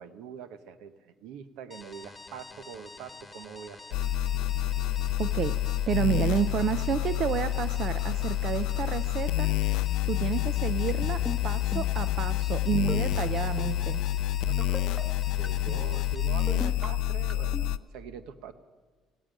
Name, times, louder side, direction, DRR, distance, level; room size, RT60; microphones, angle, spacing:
voice 1, 0.0-4.0 14.5-18.5, right 8 dB, 80° right, 12 dB, 0.9 m, -44 dB
sound 1, 1.7-16.6, left 3 dB, 15° left, 1.5 m, -48 dB
sound 2, 3.9-17.8, left 13 dB, 85° left, 0.4 m, -28 dB
voice 2, 5.2-5.5 5.9-9.5 10.1-14.0, right 9 dB, 55° right, 14 dB, 0.5 m, -30 dB
sound 3, 10.9-11.4 11.7-12.0 12.7-13.2 13.6-13.8 14.6-15.0 15.4-15.8 16.5-16.9 17.3-17.6, equal, 5° right, 1.2 m, -36 dB
16.5 x 8.9 x 9.1 m, 1.4 s
cardioid pair, 110°, 0 cm